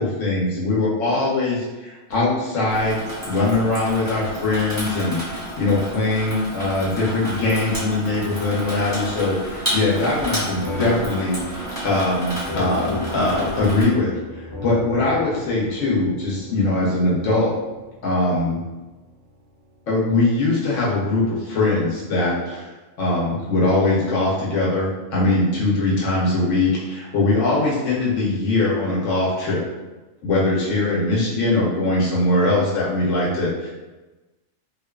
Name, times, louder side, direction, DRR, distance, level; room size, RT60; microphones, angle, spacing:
voice 1, 0.0-3.0 3.3-5.2 5.6-11.4 11.8-14.1 14.6-17.5 18.0-18.6 19.9-22.7 23.0-29.6 30.2-33.7, left 2 dB, 70° left, -6 dB, 1.0 m, -21 dB
Water tap faucet / Sink (filling or washing), 2.7-13.8, equal, 15° right, 0.8 m, -31 dB
sound 1, 10.6-19.4, equal, 30° left, 0.8 m, -35 dB
2.4 x 2.3 x 2.2 m, 1.2 s
omnidirectional pair, 1.4 m